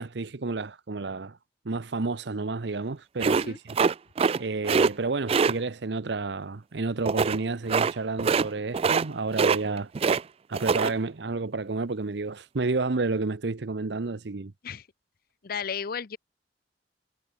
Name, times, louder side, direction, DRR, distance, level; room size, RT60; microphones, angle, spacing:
voice 1, 0.0-1.4 1.6-3.6 4.4-9.9 10.5-14.5, right 3 dB, 65° right, 0.8 m, -30 dB
sound 1, 3.2-4.4 4.6-4.9 5.3-5.5 7.1-7.4 7.7-7.9 8.2-8.5 8.7-9.1 9.3-10.2 10.5-10.9, right 5 dB, 35° right, 0.3 m, -23 dB
voice 2, 15.4-16.2, left 7 dB, 55° left, 0.6 m, -34 dB
head